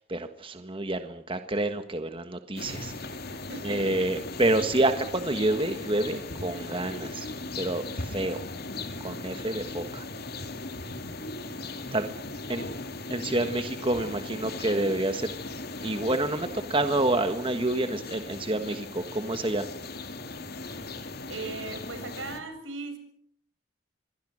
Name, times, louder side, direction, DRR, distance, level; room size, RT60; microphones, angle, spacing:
voice 1, 0.1-2.9 3.6-7.3 7.6-8.4 9.0-10.0 11.9-12.1 12.5-12.7 13.1-15.3 15.8-19.6, right 2 dB, 25° right, 8 dB, 1.4 m, -28 dB
sound 1, 2.6-22.4, left 2 dB, 55° left, 2.6 m, -38 dB
voice 2, 3.5-4.1 21.3-23.0, right 3 dB, 85° right, 7 dB, 7.0 m, -38 dB
26.5 x 23.0 x 6.4 m, 0.64 s
head